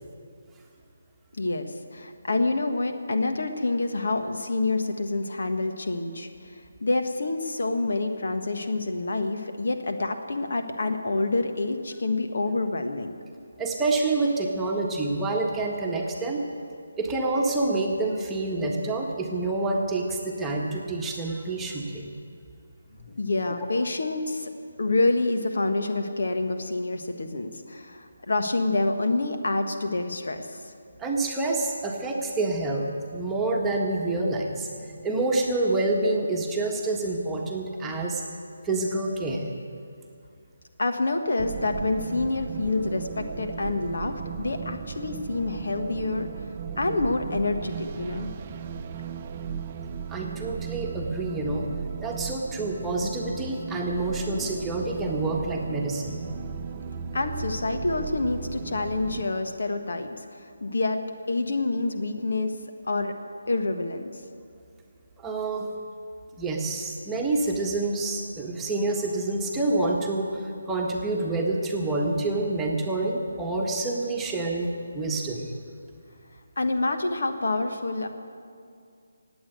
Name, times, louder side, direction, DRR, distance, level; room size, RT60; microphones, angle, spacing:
voice 1, 1.4-13.1 23.0-24.5 24.8-30.6 40.8-46.3 46.8-48.3 57.1-61.0 61.3-62.5 62.9-63.1 63.5-64.1 76.6-78.1, left 2 dB, 65° left, 6 dB, 1.4 m, -27 dB
voice 2, 13.6-16.5 17.0-22.1 31.0-38.2 38.6-39.5 50.1-51.7 52.0-56.2 65.2-65.7 66.4-75.5, right 2 dB, 10° right, -2 dB, 1.5 m, -27 dB
sound 1, 41.4-59.3, right 6 dB, 30° right, 0.7 m, -36 dB
18.0 x 8.7 x 8.3 m, 2.4 s
figure-of-eight pair, 150°, 0 cm